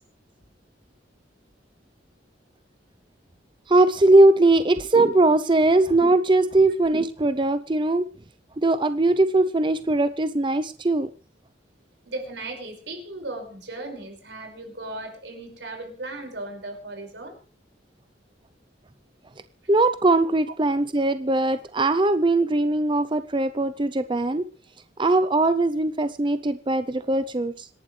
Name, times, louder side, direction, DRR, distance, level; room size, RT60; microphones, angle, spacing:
voice 1, 3.7-8.1 8.6-11.1 19.7-24.4 25.0-27.7, right 2 dB, 25° right, 11 dB, 0.6 m, -20 dB
voice 2, 12.1-17.4, right 2 dB, 75° right, 4 dB, 5.5 m, -36 dB
26.5 x 11.5 x 3.3 m, 0.36 s
head